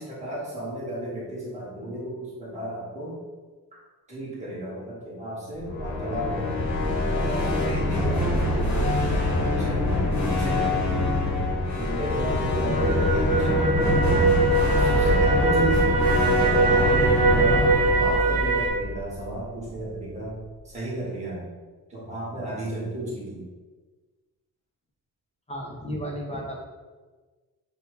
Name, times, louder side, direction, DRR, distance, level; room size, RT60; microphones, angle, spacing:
voice 1, 0.0-3.2 4.1-6.6 7.1-9.9 10.2-11.2 11.7-14.3 14.7-15.9 16.4-20.4 20.6-21.5 21.9-23.4, right 1 dB, 20° right, -8 dB, 1.5 m, -34 dB
sound 1, 5.5-19.6, left 1 dB, 50° left, 1.0 m, -24 dB
sound 2, 12.8-18.7, right 3 dB, 60° right, 1.3 m, -23 dB
voice 2, 25.5-26.6, equal, 20° left, -2 dB, 0.6 m, -33 dB
6.8 x 2.3 x 3.2 m, 1.3 s
wide cardioid pair, 170°, 36 cm